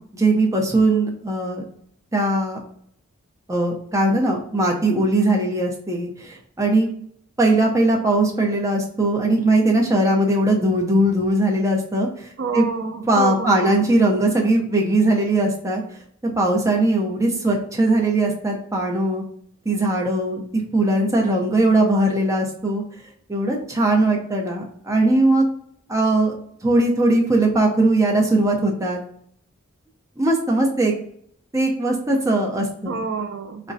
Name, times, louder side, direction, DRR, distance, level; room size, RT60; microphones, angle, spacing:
voice 1, 0.2-1.6 2.1-2.6 3.5-6.9 7.4-12.1 12.5-12.7 13.1-15.8 16.4-19.2 19.7-20.4 20.7-22.8 23.3-25.4 25.9-26.3 26.6-29.0 30.2-30.9 31.5-33.0, right 2 dB, 15° right, 0 dB, 0.6 m, -19 dB
voice 2, 12.4-13.9 32.9-33.6, right 4 dB, 60° right, 8 dB, 0.4 m, -28 dB
4.8 x 2.2 x 2.6 m, 0.64 s
head